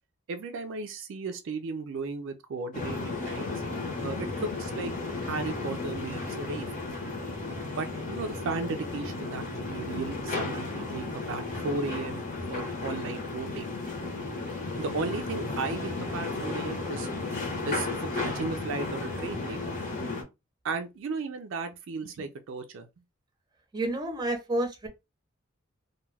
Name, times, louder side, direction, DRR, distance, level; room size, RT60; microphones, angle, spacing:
voice 1, 0.3-3.5 4.0-6.7 7.8-13.7 14.8-17.1 17.7-17.9 18.1-19.6 20.6-22.9, right 4 dB, 65° right, 0.4 m, -35 dB
sound 1, 2.7-20.2, left 3 dB, 40° left, 0.9 m, -34 dB
voice 2, 23.7-24.9, right 1 dB, 20° right, 0.7 m, -29 dB
2.3 x 2.2 x 3.2 m
head